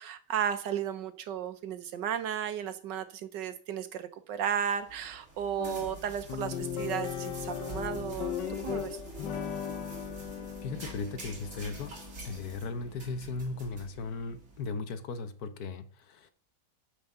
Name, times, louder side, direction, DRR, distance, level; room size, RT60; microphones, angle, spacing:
voice 1, 0.0-8.4 8.6-9.0, right 8 dB, 90° right, 1.6 m, -34 dB
sound 1, 4.7-14.7, right 3 dB, 40° right, 2.5 m, -47 dB
sound 2, 5.6-14.1, left 9 dB, 85° left, 1.7 m, -38 dB
voice 2, 10.6-12.0 12.2-16.3, left 4 dB, 65° left, 1.3 m, -37 dB
9.0 x 5.0 x 6.7 m
omnidirectional pair, 1.8 m